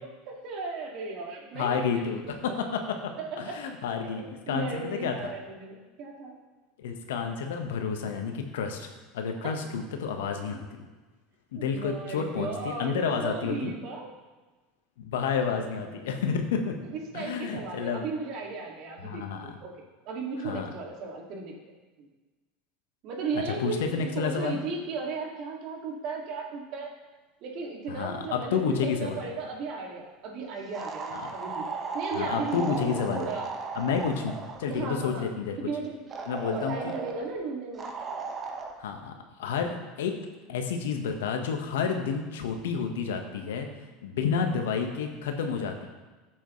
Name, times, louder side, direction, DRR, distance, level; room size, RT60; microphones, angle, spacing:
voice 1, 0.3-2.6 3.2-3.6 4.0-6.3 9.4-9.5 11.6-14.1 15.9-16.1 17.1-19.7 20.0-21.5 22.0-22.1 23.0-26.9 27.4-31.7 31.9-33.5 34.7-35.3 35.6-36.0 36.5-37.9, right 4 dB, 55° right, 0 dB, 2.5 m, -36 dB
voice 2, 1.5-5.3 6.8-8.9 9.1-10.8 11.5-13.7 15.0-16.8 17.1-18.0 19.0-19.6 20.4-20.7 23.3-24.6 27.9-29.2 31.1-31.3 32.1-33.2 33.7-34.3 34.6-35.6 36.3-36.9 38.8-39.1 39.4-40.1 40.5-43.7 44.0-45.9, left 6 dB, 75° left, 4 dB, 1.4 m, -30 dB
sound 1, 30.7-34.7 36.1-37.3 37.8-38.7, right 4 dB, 35° right, 1.4 m, -36 dB
14.0 x 8.0 x 3.3 m, 1.2 s
hypercardioid pair, 80°, 0 cm